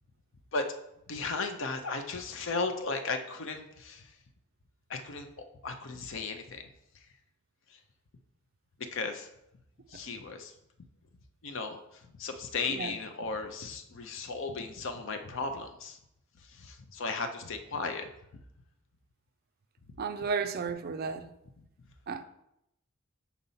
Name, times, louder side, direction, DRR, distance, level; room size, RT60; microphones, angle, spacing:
voice 1, 1.1-4.1 4.9-5.3 5.6-6.7 7.7-7.8 8.9-9.3 9.9-10.5 11.4-11.8 12.2-16.0 16.5-18.1, left 4 dB, 65° left, 0.6 m, -35 dB
voice 2, 20.0-21.3 22.1-22.2, right 5 dB, 45° right, 0.4 m, -33 dB
4.2 x 4.1 x 5.6 m
head